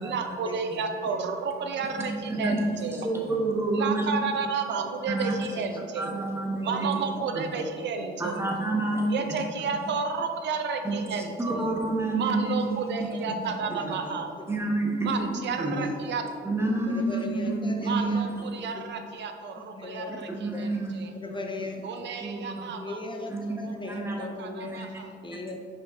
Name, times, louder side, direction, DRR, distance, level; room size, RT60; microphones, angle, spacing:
voice 1, 0.0-3.1 3.7-6.1 6.6-8.4 9.1-11.6 12.2-14.3 15.1-16.2 17.8-21.1 21.8-25.1, right 5 dB, 65° right, 5 dB, 0.5 m, -32 dB
voice 2, 2.0-2.6 3.0-4.0 5.1-5.3 6.0-6.9 7.3-7.4 8.2-9.1 10.8-11.0 11.4-12.5 13.9-14.0 14.5-15.1 15.6-15.7 16.4-18.3 20.1-21.0 22.2-22.6 23.3-24.3 24.6-24.9, right 2 dB, 10° right, -1 dB, 1.1 m, -29 dB
voice 3, 13.6-14.2 15.6-15.9 16.9-18.3 19.6-20.7 21.1-21.8 22.8-24.8 25.2-25.6, left 2 dB, 25° left, 3 dB, 0.5 m, -38 dB
5.0 x 5.0 x 3.8 m, 2.2 s
cardioid pair, 90°, 20 cm